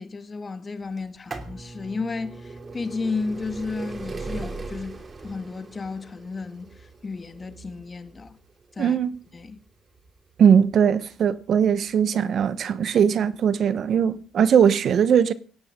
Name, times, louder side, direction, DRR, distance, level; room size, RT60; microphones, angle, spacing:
voice 1, 0.0-5.0 5.2-8.4 8.7-9.0 9.3-9.6, left 4 dB, 30° left, 1.8 m, -33 dB
sound 1, 1.0-12.6 13.4-13.5 14.5-14.6 14.8-14.9, right 3 dB, 35° right, 2.9 m, -39 dB
voice 2, 8.8-9.1 10.4-15.3, right 8 dB, 60° right, 1.0 m, -20 dB
18.5 x 16.5 x 3.7 m
cardioid pair, 90°, 0 cm